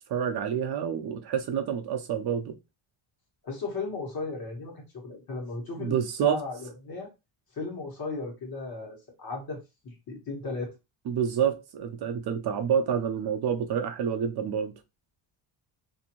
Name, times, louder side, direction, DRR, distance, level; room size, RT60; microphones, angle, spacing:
voice 1, 0.1-2.5 5.8-6.4 11.1-14.7, right 8 dB, 50° right, 0.5 m, -28 dB
voice 2, 3.4-7.1 7.5-10.7, left 3 dB, 45° left, 1.3 m, -36 dB
2.6 x 2.6 x 2.9 m
cardioid pair, 145°, 50 cm